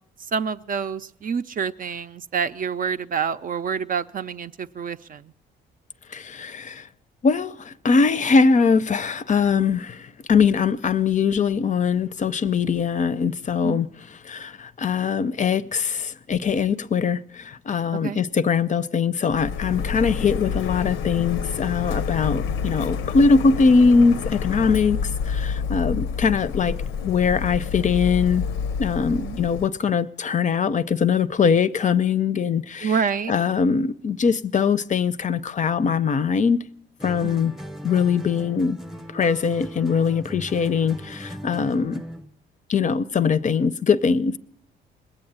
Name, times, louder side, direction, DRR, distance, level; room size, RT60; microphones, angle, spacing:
voice 1, 0.3-5.3 13.6-13.8 17.9-18.2 29.2-29.4 32.8-33.4 37.2-37.5, right 6 dB, 45° right, 0.5 m, -27 dB
voice 2, 6.1-6.9 7.2-13.9 14.2-26.8 27.0-28.4 28.8-32.9 33.3-36.6 37.0-37.5 37.8-38.8 39.1-42.0 42.7-44.4, left 5 dB, 40° left, 0.5 m, -21 dB
Printer, 19.3-29.7, left 6 dB, 85° left, 0.6 m, -28 dB
sound 1, 37.0-42.3, equal, ahead, 0.7 m, -38 dB
20.0 x 7.9 x 8.8 m
cardioid pair, 90°, 20 cm